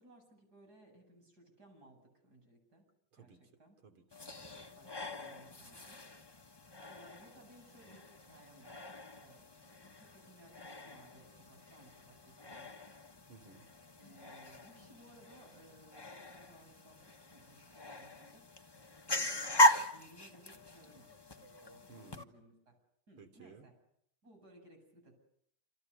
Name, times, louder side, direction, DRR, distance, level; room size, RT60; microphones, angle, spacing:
voice 1, 0.0-2.8 3.2-3.8 4.2-6.0 6.8-12.8 14.0-18.7 19.1-19.6 19.9-22.8 23.1-23.7 24.2-25.1, right 1 dB, 45° right, 4 dB, 8.7 m, -61 dB
voice 2, 3.1-3.4 3.8-4.2 13.3-13.7 21.9-22.2 23.2-23.7, right 5 dB, 70° right, 7 dB, 4.1 m, -56 dB
sound 1, 4.1-22.2, equal, 15° left, 1.0 m, -38 dB
28.5 x 28.0 x 7.0 m, 0.72 s
omnidirectional pair, 2.4 m